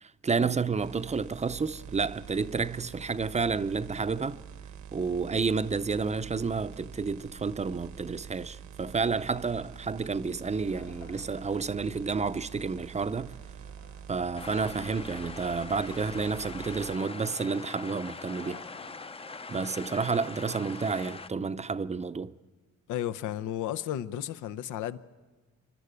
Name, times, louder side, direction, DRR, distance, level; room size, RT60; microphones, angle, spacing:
voice 1, 0.0-4.4 4.9-13.4 14.1-18.6 19.5-22.3, right 4 dB, 25° right, 0.6 m, -30 dB
sound 1, 0.8-17.0, right 8 dB, 65° right, 1.0 m, -46 dB
Wood, 10.7-19.5, left 6 dB, 50° left, 1.4 m, -54 dB
sound 2, 14.4-21.3, left 4 dB, 20° left, 0.6 m, -42 dB
voice 2, 22.9-25.0, left 11 dB, 85° left, 0.8 m, -33 dB
27.0 x 12.0 x 8.3 m
cardioid pair, 90°, 30 cm